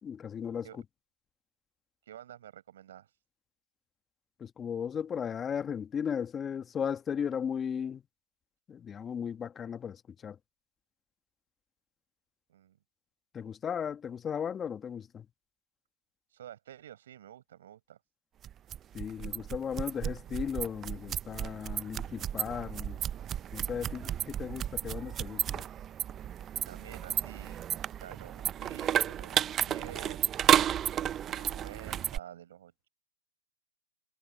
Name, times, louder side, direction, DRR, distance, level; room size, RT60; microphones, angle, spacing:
voice 1, 0.0-0.7 4.4-8.0 8.7-10.4 13.3-15.3 18.9-23.0 23.5-25.6, left 7 dB, 15° left, 1.2 m, -36 dB
voice 2, 2.1-3.1 12.5-12.8 16.3-18.0 26.7-30.3 31.3-32.9, right 11 dB, 65° right, 6.9 m, -49 dB
sound 1, 18.4-32.2, right 10 dB, 20° right, 0.4 m, -32 dB
hypercardioid pair, 135°, 0 cm